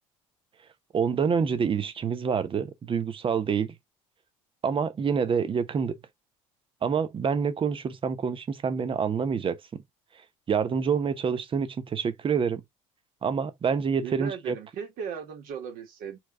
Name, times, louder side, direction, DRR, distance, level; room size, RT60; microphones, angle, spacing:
voice 1, 0.9-3.7 4.6-5.9 6.8-9.6 10.5-12.6 13.2-14.5, right 6 dB, 30° right, 0.9 m, -27 dB
voice 2, 14.0-16.2, right 7 dB, 55° right, 2.0 m, -37 dB
4.5 x 3.5 x 2.6 m
figure-of-eight pair, 60°, 18 cm